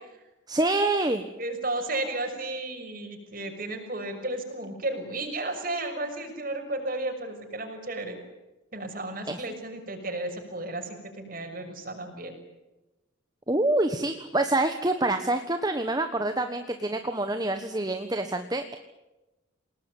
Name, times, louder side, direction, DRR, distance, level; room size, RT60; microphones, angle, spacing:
voice 1, 0.5-1.2 9.3-9.4 13.5-18.8, right 2 dB, 20° right, 7 dB, 1.3 m, -26 dB
voice 2, 1.4-8.2 8.7-12.4, right 2 dB, 45° right, 4 dB, 6.1 m, -33 dB
29.0 x 19.5 x 9.3 m, 1.0 s
head